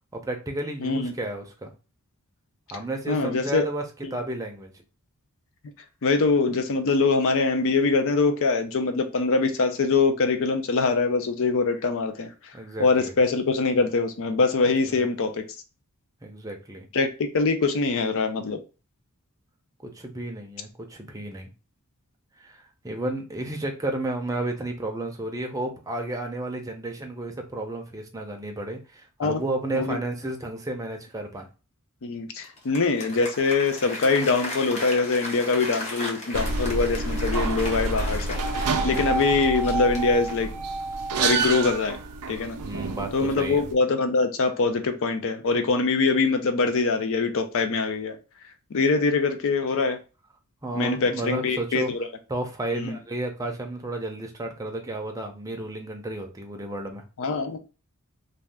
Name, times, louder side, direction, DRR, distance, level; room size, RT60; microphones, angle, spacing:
voice 1, 0.1-1.7 2.7-3.8 4.1-4.7 12.5-13.1 14.9-15.0 16.2-16.9 19.8-21.5 22.4-31.5 38.7-39.0 42.6-43.6 50.6-51.9 52.3-57.0, right 1 dB, 15° right, 3 dB, 0.5 m, -32 dB
voice 2, 0.8-1.1 3.1-3.6 4.0-4.1 6.0-12.3 12.8-15.4 16.9-18.6 29.2-29.4 29.7-30.0 32.0-40.5 41.2-42.0 42.3-42.6 43.1-48.2 48.7-50.0 50.7-52.1 52.7-53.0 57.2-57.6, left 4 dB, 65° left, 7 dB, 0.5 m, -23 dB
Applause, 32.4-40.6, left 1 dB, 30° left, 0.8 m, -37 dB
sound 1, 36.3-43.7, right 3 dB, 85° right, 0.4 m, -28 dB
2.6 x 2.2 x 3.3 m, 0.32 s
head